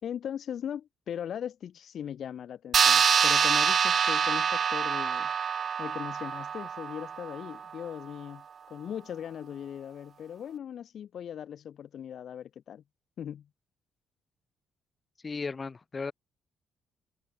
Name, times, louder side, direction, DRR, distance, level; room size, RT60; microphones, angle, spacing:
voice 1, 0.0-5.3 5.8-12.8 13.2-13.5, left 9 dB, 65° left, 1.8 m, -39 dB
sound 1, 2.7-7.6, right 7 dB, 50° right, 0.5 m, -25 dB
voice 2, 15.2-16.1, left 4 dB, 30° left, 4.6 m, -35 dB
cardioid pair, 90°, 0 cm